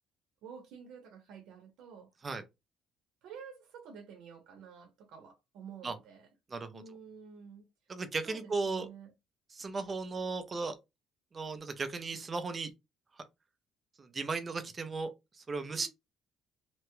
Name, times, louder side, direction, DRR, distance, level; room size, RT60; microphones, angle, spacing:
voice 1, 0.4-2.1 3.2-6.3 6.7-7.6 8.2-9.1 15.6-15.9, right 6 dB, 75° right, 0.8 m, -50 dB
voice 2, 6.5-6.8 7.9-8.9 9.5-10.7 11.3-12.7 14.0-15.1 15.5-15.9, right 4 dB, 25° right, 0.5 m, -36 dB
2.9 x 2.2 x 3.0 m
cardioid pair, 155°, 0 cm